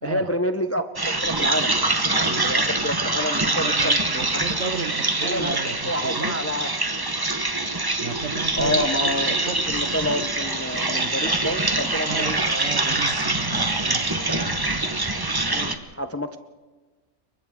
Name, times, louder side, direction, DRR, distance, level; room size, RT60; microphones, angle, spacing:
voice 1, 0.0-2.0 2.4-4.3 5.2-6.7 8.6-12.7 15.5-16.4, equal, 20° left, 8 dB, 0.4 m, -28 dB
sound 1, 1.0-15.8, right 2 dB, 20° right, 1.0 m, -24 dB
voice 2, 3.6-6.4 8.0-9.9 10.9-11.1 12.1-14.2, right 5 dB, 50° right, 9 dB, 1.4 m, -34 dB
29.5 x 23.5 x 3.7 m, 1.3 s
omnidirectional pair, 1.5 m